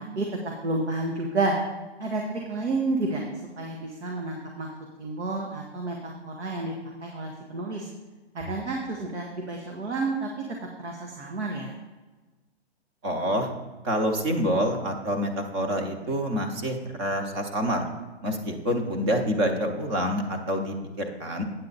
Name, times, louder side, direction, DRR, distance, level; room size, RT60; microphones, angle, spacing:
voice 1, 0.6-1.6 2.0-2.2 2.5-3.2 3.6-4.7 5.0-6.7 7.0-7.9 8.3-10.3 10.8-11.7, right 3 dB, 90° right, 1 dB, 1.5 m, -30 dB
voice 2, 13.0-13.5 13.8-17.8 18.2-21.4, equal, 20° right, 4 dB, 0.8 m, -27 dB
8.7 x 7.5 x 4.0 m, 1.3 s
hypercardioid pair, 160°, 33 cm